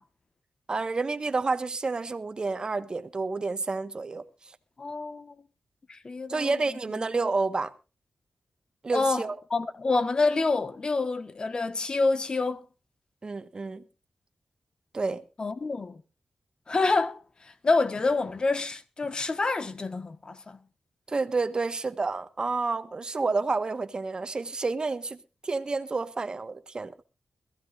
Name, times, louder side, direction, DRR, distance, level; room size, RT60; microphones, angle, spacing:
voice 1, 0.7-4.5 6.3-7.7 8.8-9.3 13.2-13.8 14.9-15.2 21.1-25.2 25.4-26.9, right 3 dB, 35° right, 1.3 m, -29 dB
voice 2, 4.8-5.4 5.9-6.6 8.9-9.2 9.5-12.7 15.4-16.0 16.7-20.6, left 3 dB, 40° left, 1.3 m, -27 dB
22.0 x 15.0 x 2.5 m
wide cardioid pair, 110°, 2 cm